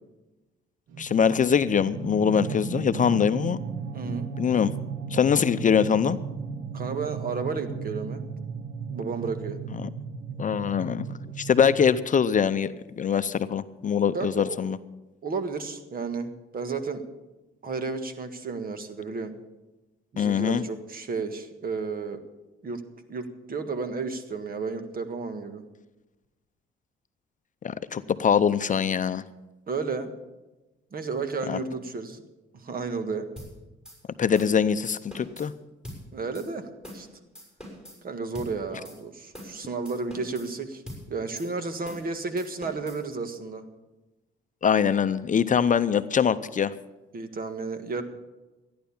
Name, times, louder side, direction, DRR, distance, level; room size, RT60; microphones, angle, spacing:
sound 1, 0.9-12.0, right 5 dB, 75° right, 1.1 m, -35 dB
voice 1, 1.0-3.6 4.4-4.7 5.1-6.2 9.7-9.9 10.4-11.0 11.4-14.8 20.2-20.6 27.6-29.2 31.5-31.6 34.2-35.5 44.6-46.7, left 7 dB, 40° left, 12 dB, 0.6 m, -23 dB
voice 2, 3.9-4.3 6.7-8.2 8.9-9.6 14.1-14.7 15.2-17.1 17.6-19.4 20.1-22.2 22.6-22.8 23.1-25.6 29.7-30.1 30.9-32.2 32.5-33.3 36.1-36.7 36.9-37.1 38.0-40.8 41.1-43.6 47.1-48.0, right 4 dB, 50° right, 9 dB, 1.6 m, -32 dB
sound 2, 33.4-33.5 33.8-34.0 34.3-34.6 34.9-35.5 35.8-36.0 36.3-36.5 36.8-37.1 37.3-38.0 38.3-38.5 38.8-39.0 39.3-39.6 39.8-40.5 40.9-41.0 41.4-41.5 41.8-42.1 42.4-43.0, equal, 5° right, 6.5 m, -42 dB
14.0 x 10.5 x 7.1 m, 1.1 s
cardioid pair, 90°, 20 cm